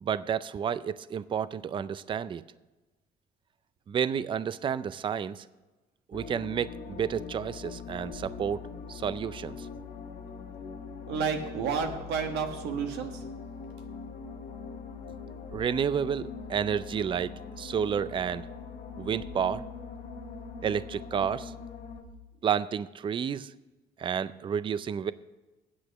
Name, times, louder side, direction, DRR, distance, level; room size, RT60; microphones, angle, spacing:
voice 1, 0.0-2.4 3.9-5.4 6.1-8.6 8.9-9.7 15.5-18.5 19.0-19.6 20.6-21.5 22.4-23.5 24.0-25.1, right 8 dB, 30° right, 16 dB, 0.4 m, -30 dB
sound 1, 6.1-22.0, left 5 dB, 65° left, 1.5 m, -42 dB
voice 2, 11.1-13.2, right 6 dB, 85° right, 5 dB, 1.3 m, -31 dB
9.5 x 8.0 x 6.2 m, 1.1 s
cardioid pair, 110°, 17 cm